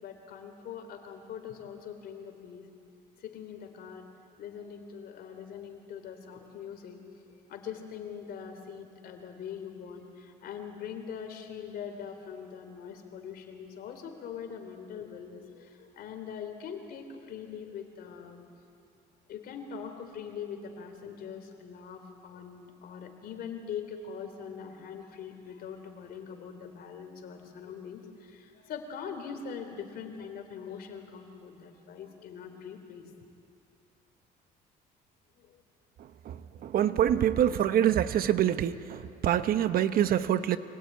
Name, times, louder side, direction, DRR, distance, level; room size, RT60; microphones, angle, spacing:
voice 1, 0.0-2.6 3.2-4.1 4.4-7.0 7.5-18.4 19.3-33.0 35.4-35.5, left 7 dB, 65° left, 6 dB, 3.3 m, -42 dB
voice 2, 36.3-40.6, right 10 dB, 60° right, 12 dB, 1.0 m, -26 dB
25.0 x 17.5 x 9.3 m, 2.6 s
cardioid pair, 110°, 17 cm